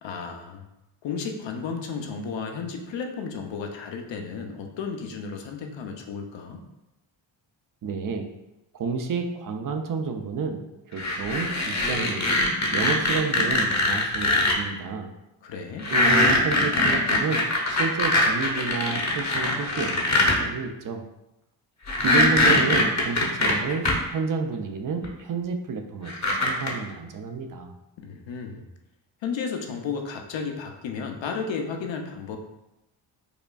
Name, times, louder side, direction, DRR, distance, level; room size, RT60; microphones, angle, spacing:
voice 1, 0.0-0.6 1.0-6.6 15.4-15.9 28.0-28.6 29.2-32.4, left 5 dB, 65° left, 3 dB, 0.7 m, -33 dB
voice 2, 7.8-8.3 8.7-12.3 12.7-15.1 15.9-21.0 22.0-27.7, right 5 dB, 45° right, 5 dB, 0.5 m, -30 dB
sound 1, 11.0-14.5 15.8-20.4 21.9-23.9 25.0-25.1 26.1-26.7, left 2 dB, 35° left, 0.9 m, -22 dB
4.9 x 2.3 x 2.3 m, 0.93 s
cardioid pair, 65°, 47 cm